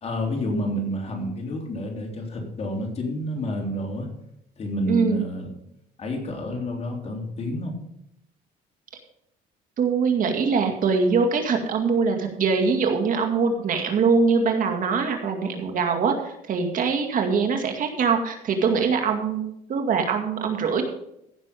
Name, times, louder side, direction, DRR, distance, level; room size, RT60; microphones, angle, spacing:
voice 1, 0.0-4.1 4.6-5.5 6.0-7.8, equal, 40° left, 1 dB, 3.5 m, -29 dB
voice 2, 4.9-5.2 9.8-20.8, right 5 dB, 55° right, 4 dB, 2.2 m, -23 dB
15.5 x 6.8 x 5.2 m, 0.78 s
cardioid pair, 110°, 17 cm